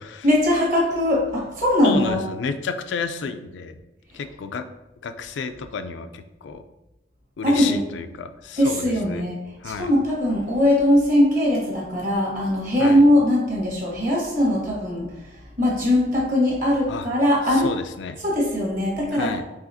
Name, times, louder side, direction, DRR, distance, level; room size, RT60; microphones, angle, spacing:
voice 1, 0.2-2.2 7.4-7.8 8.6-9.4 9.6-17.7 18.2-19.4, left 1 dB, 45° right, -3 dB, 1.4 m, -20 dB
voice 2, 1.8-3.8 4.1-4.6 5.0-6.6 7.4-9.3 9.6-9.9 12.8-13.0 16.9-17.1 17.5-18.2 19.1-19.4, left 5 dB, 75° left, 9 dB, 0.4 m, -31 dB
4.9 x 3.4 x 2.7 m, 1.0 s
head